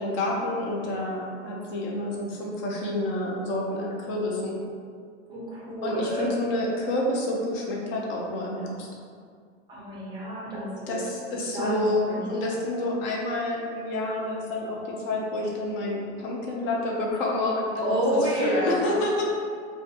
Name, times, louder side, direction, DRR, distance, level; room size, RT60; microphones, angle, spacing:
voice 1, 0.0-4.6 5.8-8.9 10.9-17.9 18.1-19.2, left 1 dB, 35° left, -2 dB, 0.6 m, -28 dB
voice 2, 5.3-6.3 9.7-11.0 11.5-12.2 17.8-19.2, equal, 15° right, -6 dB, 0.6 m, -29 dB
2.4 x 2.3 x 2.7 m, 2.1 s
hypercardioid pair, 125°, 36 cm